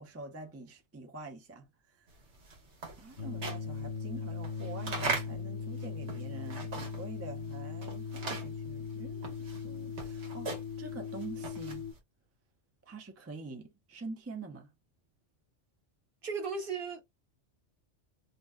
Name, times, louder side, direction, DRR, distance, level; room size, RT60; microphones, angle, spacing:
voice 1, 0.0-2.1 3.0-11.8 12.9-14.7, right 3 dB, 25° right, 0.3 m, -46 dB
sound 1, 2.2-7.2 7.5-12.0, right 4 dB, 75° right, 1.3 m, -40 dB
sound 2, 3.2-11.9, left 5 dB, 65° left, 1.0 m, -39 dB
voice 2, 16.2-17.0, right 5 dB, 55° right, 0.9 m, -35 dB
2.8 x 2.1 x 3.4 m
omnidirectional pair, 1.2 m